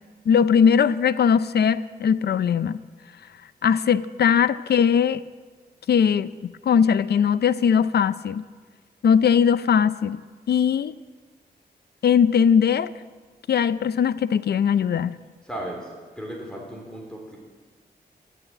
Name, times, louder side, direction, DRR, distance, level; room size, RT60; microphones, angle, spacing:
voice 1, 0.3-2.8 3.6-5.2 5.9-8.4 9.0-10.2 10.5-10.9 12.0-12.9 13.5-15.2, left 7 dB, 75° left, 15 dB, 0.5 m, -20 dB
voice 2, 15.4-17.4, right 1 dB, 5° left, -1 dB, 3.5 m, -36 dB
14.5 x 11.0 x 8.6 m, 1.4 s
wide cardioid pair, 100°, 17 cm